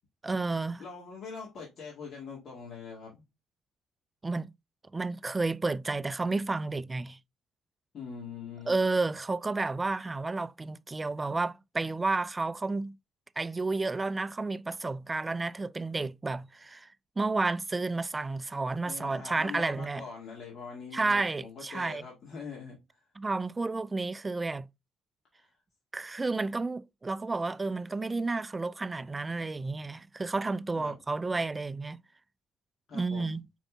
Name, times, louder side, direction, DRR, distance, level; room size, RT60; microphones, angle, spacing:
voice 1, 0.2-0.8 4.2-4.5 4.9-7.2 8.7-13.0 13.4-16.9 17.2-20.0 20.9-22.0 23.2-24.7 25.9-32.0 32.9-33.4, right 3 dB, 25° right, 0.3 m, -31 dB
voice 2, 0.8-3.2 7.9-8.8 18.8-23.1 25.4-25.5 30.7-31.0 32.9-33.4, left 5 dB, 60° left, 1.8 m, -43 dB
5.1 x 3.5 x 2.2 m
hypercardioid pair, 55°, 0 cm